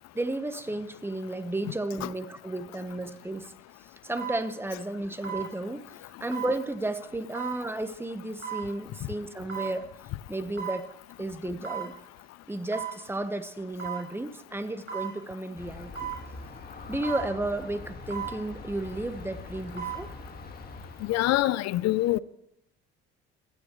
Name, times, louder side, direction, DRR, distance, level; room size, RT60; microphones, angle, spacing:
voice 1, 0.1-3.5 4.0-5.8 6.2-9.9 10.3-10.9 11.2-12.0 12.5-16.1 16.9-20.1, right 2 dB, 10° right, 1.2 m, -33 dB
sound 1, 3.0-3.2 4.2-4.4 5.2-5.5 6.3-6.6 7.3-7.6 8.4-8.7 9.5-9.7 10.6-10.8 11.6-11.9 12.7-13.0 13.8-14.1 14.9-15.1 16.0-16.2 17.0-17.3 18.1-18.4 19.5-20.0 20.4-20.5, right 9 dB, 40° right, 7.0 m, -35 dB
Aircraft, 15.6-21.4, left 3 dB, 30° left, 1.9 m, -43 dB
voice 2, 21.0-22.2, left 16 dB, 60° left, 0.6 m, -25 dB
27.5 x 9.5 x 3.2 m
supercardioid pair, 70°, 29 cm